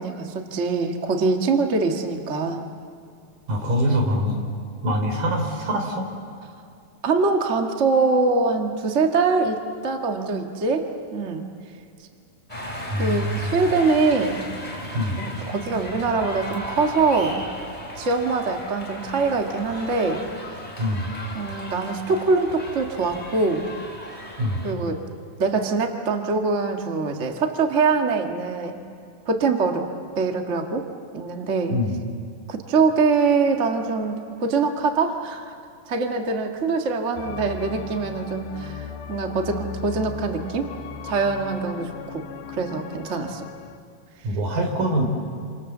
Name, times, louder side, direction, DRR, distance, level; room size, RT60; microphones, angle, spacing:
voice 1, 0.0-2.6 7.0-11.4 13.0-14.4 15.2-17.4 18.0-20.2 21.3-23.7 24.6-25.0 25.4-28.8 29.2-29.8 30.1-30.9 31.1-31.7 32.5-35.5 35.8-40.7 41.0-42.2 42.5-43.5, right 4 dB, 40° right, 3 dB, 1.1 m, -23 dB
voice 2, 3.5-4.4 4.8-6.1 12.9-13.5 14.9-15.2 20.8-21.1 24.4-24.6 31.7-32.0 44.2-45.1, equal, 70° right, 3 dB, 5.3 m, -24 dB
sound 1, 12.5-24.7, left 1 dB, 10° left, 3.2 m, -36 dB
sound 2, 37.2-43.8, left 7 dB, 70° left, 2.7 m, -37 dB
28.5 x 26.5 x 7.3 m, 2.5 s
omnidirectional pair, 4.1 m